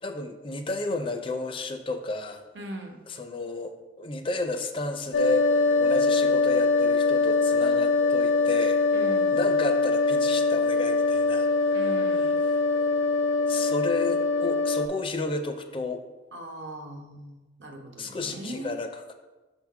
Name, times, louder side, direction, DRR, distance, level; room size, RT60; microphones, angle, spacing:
voice 1, 0.0-2.4 3.1-8.8 9.3-11.9 12.1-12.6 13.5-16.0 18.0-19.1, left 3 dB, 30° left, 7 dB, 0.4 m, -32 dB
voice 2, 2.5-3.0 8.9-9.4 11.7-12.4 16.3-18.8, right 1 dB, 65° right, 3 dB, 1.0 m, -39 dB
sound 1, 5.1-14.9, left 3 dB, 80° left, 0.5 m, -23 dB
5.9 x 3.6 x 5.9 m, 1.2 s
head